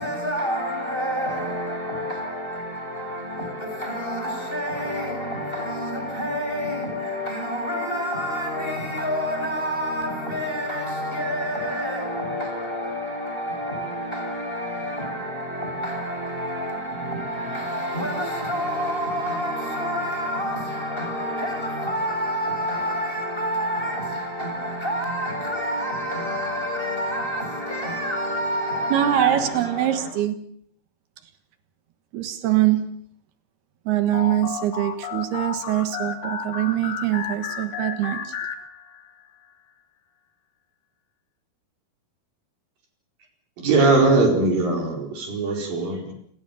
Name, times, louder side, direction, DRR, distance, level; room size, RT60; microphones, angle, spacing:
voice 1, 0.0-30.1, equal, 15° left, 6.9 m, -28 dB
voice 2, 28.9-30.4 32.1-32.8 33.9-38.3, right 13 dB, 80° right, 3.5 m, -23 dB
sound 1, 34.1-39.2, left 6 dB, 45° left, 3.1 m, -33 dB
voice 3, 43.6-46.1, right 3 dB, 65° right, 6.3 m, -20 dB
29.5 x 20.5 x 7.0 m
omnidirectional pair, 4.5 m